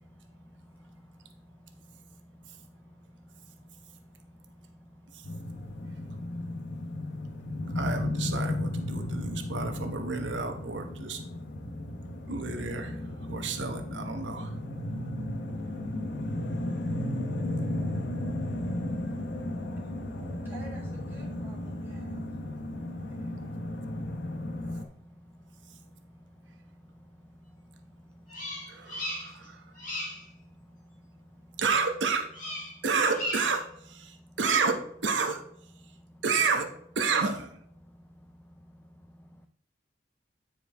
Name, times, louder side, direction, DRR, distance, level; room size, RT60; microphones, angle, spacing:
voice 1, 0.2-2.6 3.4-4.1 4.5-6.4 6.7-7.7 9.2-9.5 11.6-11.8 12.2-12.3 14.9-15.2 15.5-19.1 19.5-20.1 22.0-24.2 24.6-25.8 26.1-28.6 29.1-30.0 30.3-31.6 32.7-32.8 34.1-34.3 35.8-36.2 37.8-39.5, equal, 10° left, 5 dB, 0.3 m, -55 dB
sound 1, 5.2-24.8, left 1 dB, 70° left, 0.8 m, -34 dB
voice 2, 7.7-11.2 12.3-13.0 13.3-14.5 28.7-29.6 31.6-32.3 32.8-35.4 36.2-36.7 36.9-37.6, right 4 dB, 80° right, 6 dB, 1.0 m, -30 dB
voice 3, 19.5-22.2, right 2 dB, 10° right, -6 dB, 1.5 m, -51 dB
Bird vocalization bird call bird song, 28.3-29.5 29.8-30.3 32.3-32.8 33.1-33.6, left 1 dB, 45° left, 1.9 m, -36 dB
9.1 x 4.6 x 3.4 m, 0.69 s
head